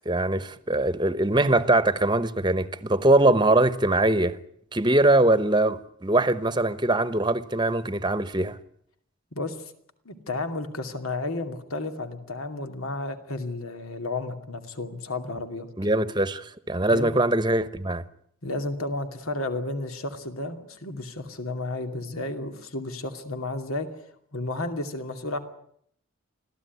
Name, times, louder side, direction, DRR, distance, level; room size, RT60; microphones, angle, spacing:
voice 1, 0.0-4.4 4.7-8.6 15.8-18.0, right 2 dB, 20° right, 0.9 m, -22 dB
voice 2, 10.1-15.7 16.9-17.1 18.4-23.9 24.3-25.4, left 2 dB, 90° left, 2.6 m, -32 dB
25.5 x 16.0 x 9.5 m
head